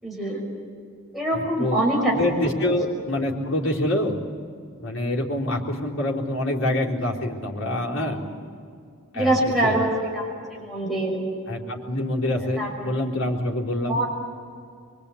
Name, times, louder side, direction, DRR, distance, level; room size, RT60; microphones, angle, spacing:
voice 1, 0.0-0.4 1.1-2.1 7.9-8.2 9.1-11.2 12.6-12.9 13.9-14.1, right 1 dB, ahead, -4 dB, 5.8 m, -24 dB
voice 2, 1.3-1.8 2.1-4.2 4.8-8.2 9.1-9.8 11.5-14.0, left 1 dB, 60° left, -4 dB, 3.9 m, -26 dB
24.0 x 24.0 x 8.6 m, 2.3 s
head